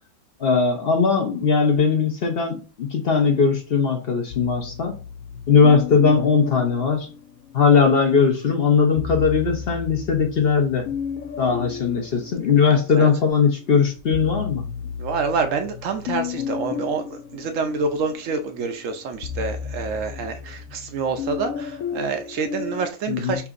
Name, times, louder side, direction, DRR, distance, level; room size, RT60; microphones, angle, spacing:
voice 1, 0.4-4.9 5.5-7.1 7.5-10.9 11.4-14.6 23.1-23.4, left 5 dB, 50° left, 0.9 m, -19 dB
sound 1, 4.3-7.8 8.8-13.2 13.6-22.9, left 7 dB, 80° left, 1.0 m, -33 dB
voice 2, 15.0-23.5, right 4 dB, 70° right, 1.0 m, -27 dB
5.7 x 2.7 x 2.5 m
omnidirectional pair, 1.4 m